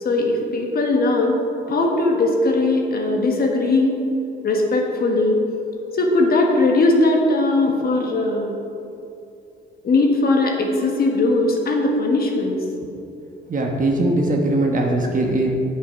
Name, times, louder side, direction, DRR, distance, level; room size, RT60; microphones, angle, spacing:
voice 1, 0.0-4.0 4.4-5.4 5.9-8.5 9.8-12.6, left 2 dB, 50° left, 1 dB, 1.4 m, -19 dB
voice 2, 13.5-15.5, right 2 dB, 40° right, 1 dB, 1.1 m, -20 dB
7.4 x 6.9 x 5.2 m, 2.7 s
cardioid pair, 90°, 20 cm